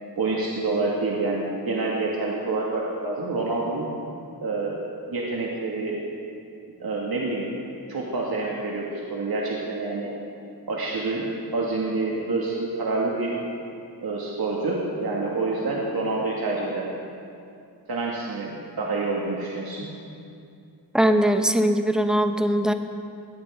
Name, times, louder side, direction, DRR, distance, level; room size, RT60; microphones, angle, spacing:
voice 1, 0.2-3.9 4.4-4.8 5.1-6.0 6.8-7.5 7.9-10.1 10.7-13.4 14.0-16.9 17.9-19.9, right 3 dB, 65° right, -4 dB, 2.1 m, -27 dB
voice 2, 20.9-22.7, equal, ahead, 6 dB, 0.9 m, -20 dB
20.0 x 17.5 x 3.7 m, 2.6 s
wide cardioid pair, 115°, 40 cm